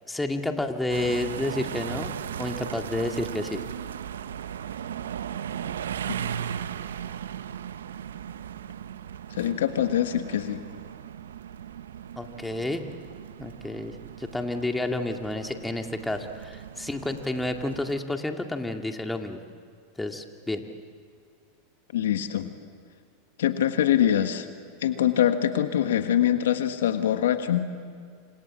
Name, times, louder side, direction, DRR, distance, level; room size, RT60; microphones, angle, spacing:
voice 1, 0.1-3.6 12.2-12.9 13.4-19.4 20.0-20.6, left 2 dB, 10° left, 4 dB, 2.2 m, -30 dB
sound 1, 0.9-18.0, right 9 dB, 80° right, 0.9 m, -37 dB
voice 2, 9.4-10.6 21.9-22.5 23.4-24.5 24.8-27.6, left 10 dB, 75° left, 9 dB, 1.5 m, -24 dB
28.5 x 26.5 x 7.5 m, 2.2 s
hypercardioid pair, 95°, 0 cm